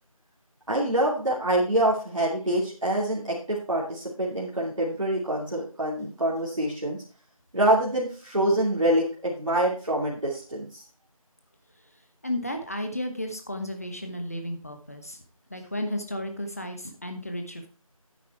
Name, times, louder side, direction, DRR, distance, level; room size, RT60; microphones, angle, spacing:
voice 1, 0.7-7.0 7.5-10.8, right 1 dB, 60° right, -5 dB, 2.7 m, -25 dB
voice 2, 12.2-15.2 15.5-17.7, left 1 dB, 25° left, 6 dB, 1.1 m, -33 dB
9.4 x 7.2 x 4.6 m, 0.36 s
figure-of-eight pair, 170°, 19 cm